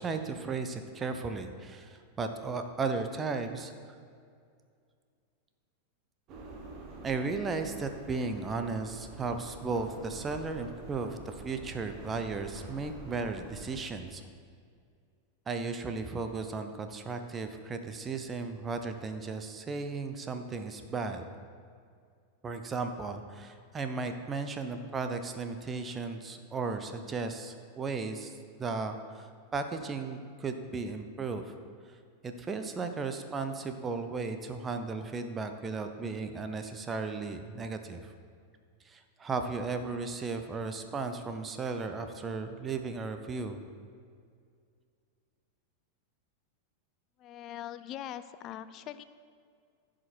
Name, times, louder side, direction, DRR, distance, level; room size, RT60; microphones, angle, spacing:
voice 1, 0.0-3.7 7.0-14.2 15.5-21.2 22.4-31.5 31.9-32.0 32.2-38.1 38.8-43.6, right 4 dB, 20° right, 7 dB, 0.7 m, -35 dB
sound 1, 6.3-13.8, right 2 dB, 35° right, 1.4 m, -47 dB
voice 2, 47.2-49.0, left 11 dB, 35° left, 13 dB, 0.4 m, -42 dB
15.0 x 5.1 x 4.5 m, 2.2 s
figure-of-eight pair, 90°, 0 cm